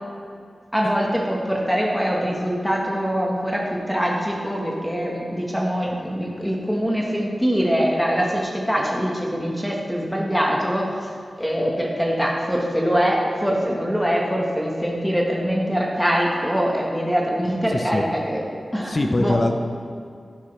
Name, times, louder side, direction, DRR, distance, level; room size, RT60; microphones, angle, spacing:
voice 1, 0.7-11.1 11.4-18.4 18.7-19.4, equal, ahead, -2 dB, 1.3 m, -23 dB
voice 2, 17.7-18.0 18.9-19.5, left 2 dB, 40° left, 4 dB, 0.7 m, -22 dB
11.5 x 10.5 x 3.3 m, 2.4 s
wide cardioid pair, 95°, 0 cm